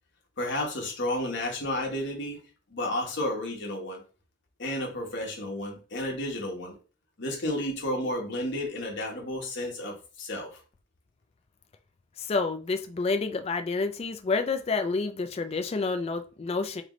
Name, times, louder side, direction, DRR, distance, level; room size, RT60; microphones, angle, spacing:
voice 1, 0.4-2.4 2.7-4.0 4.6-6.7 7.2-10.6, left 1 dB, 55° left, 0 dB, 1.3 m, -32 dB
voice 2, 12.2-16.8, left 4 dB, 30° left, 8 dB, 0.3 m, -29 dB
3.7 x 3.2 x 3.0 m, 0.36 s
head